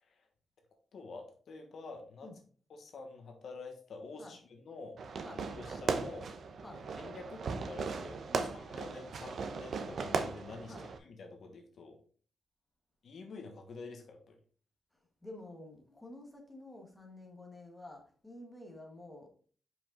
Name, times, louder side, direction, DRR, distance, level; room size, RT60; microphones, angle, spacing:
voice 1, 0.9-2.3 2.7-4.4 4.6-5.0 5.3-6.3 6.7-8.2 8.5-10.7 11.0-12.0 13.0-14.4, left 3 dB, 60° left, 1.2 m, -48 dB
Fireworks, 5.0-11.0, right 4 dB, 60° right, 0.8 m, -37 dB
voice 2, 10.6-10.9 14.9-19.3, left 1 dB, 5° left, 1.3 m, -50 dB
5.6 x 5.2 x 3.9 m
wide cardioid pair, 175°, 0 cm